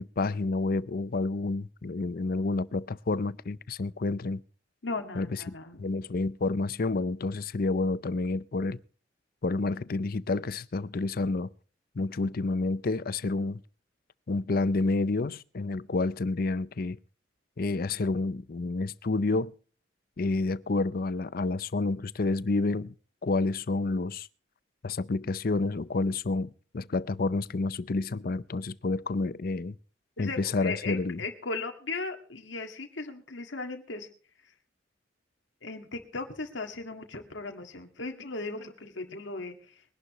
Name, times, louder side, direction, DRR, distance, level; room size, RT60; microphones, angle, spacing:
voice 1, 0.0-4.4 5.2-5.5 5.8-8.8 9.4-11.5 12.0-13.6 14.3-17.0 17.6-19.5 20.2-22.9 23.2-24.3 24.8-29.8 30.2-31.2, left 3 dB, 50° left, 0.5 m, -29 dB
voice 2, 4.8-5.9 12.0-12.3 30.2-34.1 34.4-34.5 35.6-39.8, left 3 dB, 80° left, 1.9 m, -37 dB
22.5 x 11.5 x 3.1 m
head